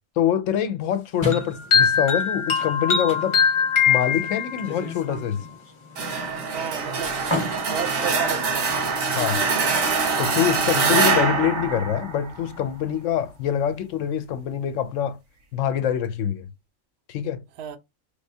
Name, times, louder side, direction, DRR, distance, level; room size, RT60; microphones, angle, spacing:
voice 1, 0.2-3.4 3.9-5.5 9.2-9.4 10.2-15.2 15.5-16.5 17.1-17.4, left 9 dB, 75° left, 0.9 m, -25 dB
sound 1, 1.2-9.0, left 1 dB, 25° left, 0.9 m, -36 dB
sound 2, 1.3-4.8, left 6 dB, 45° left, 0.4 m, -21 dB
sound 3, 6.0-12.7, right 4 dB, 80° right, 1.3 m, -24 dB
voice 2, 6.5-7.2 7.7-8.7 17.6-17.8, right 7 dB, 65° right, 0.8 m, -32 dB
3.3 x 3.2 x 2.7 m
omnidirectional pair, 1.4 m